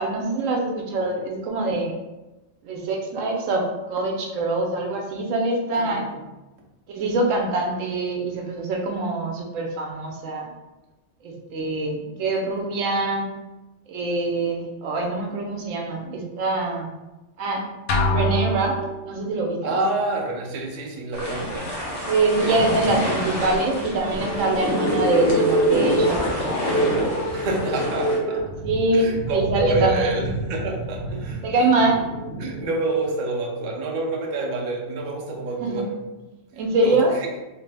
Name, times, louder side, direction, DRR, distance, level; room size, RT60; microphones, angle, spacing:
voice 1, 0.0-2.0 2.6-6.0 6.9-10.5 11.2-13.3 13.9-16.9 17.4-17.6 18.1-19.8 22.1-26.5 28.6-30.3 31.4-32.0 35.6-35.8 36.6-37.1, right 2 dB, 80° right, 2 dB, 1.0 m, -24 dB
voice 2, 5.7-6.2 19.6-21.7 22.4-22.5 24.5-24.7 27.3-28.4 28.9-31.4 32.4-36.0 36.8-37.3, right 2 dB, 60° right, 0 dB, 0.5 m, -28 dB
sound 1, 17.9-19.3, equal, 85° left, 1.0 m, -24 dB
sound 2, 21.1-28.2, left 1 dB, 35° left, 0.6 m, -30 dB
sound 3, 24.1-32.7, right 1 dB, 60° left, 1.5 m, -25 dB
3.1 x 2.0 x 3.3 m, 1.1 s
omnidirectional pair, 1.3 m